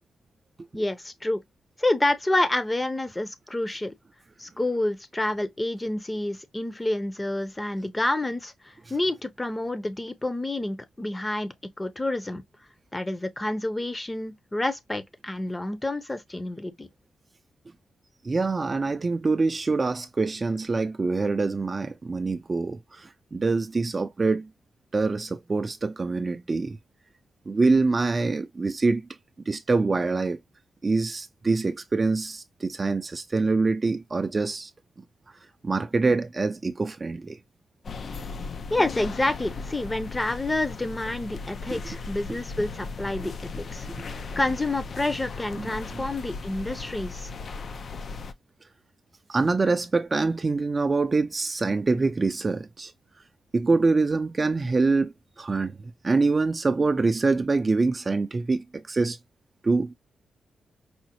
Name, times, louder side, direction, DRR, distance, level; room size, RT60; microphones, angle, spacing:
voice 1, 0.7-1.4 1.8-4.0 4.4-12.4 12.9-16.9 38.7-47.3, left 1 dB, 20° left, 0.7 m, -28 dB
voice 2, 18.2-24.5 24.9-26.8 27.5-29.1 29.5-30.4 30.8-34.7 35.6-37.4 41.7-41.8 45.6-46.0 49.3-52.9 53.5-59.2 59.6-59.9, right 3 dB, 35° right, 0.4 m, -25 dB
sound 1, 37.8-48.3, left 4 dB, 55° left, 0.4 m, -37 dB
4.9 x 2.0 x 2.9 m
cardioid pair, 80°, 0 cm